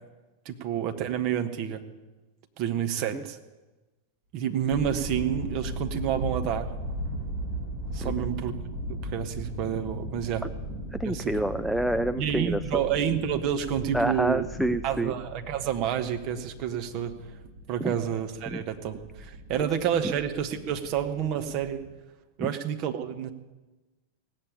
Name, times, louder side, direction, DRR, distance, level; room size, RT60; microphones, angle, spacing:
voice 1, 0.4-1.8 2.6-3.4 4.3-6.7 7.9-8.6 8.9-10.4 11.0-11.4 12.2-14.5 14.8-17.1 17.7-21.8 22.4-23.3, right 9 dB, 40° right, 7 dB, 1.3 m, -29 dB
sound 1, 4.7-21.9, right 1 dB, 60° right, 7.5 m, -37 dB
voice 2, 10.9-12.8 13.9-15.1 17.8-17.9 18.5-18.6 22.4-22.5, right 1 dB, ahead, 10 dB, 0.4 m, -28 dB
17.0 x 8.4 x 8.6 m, 1.1 s
figure-of-eight pair, 90°, 0 cm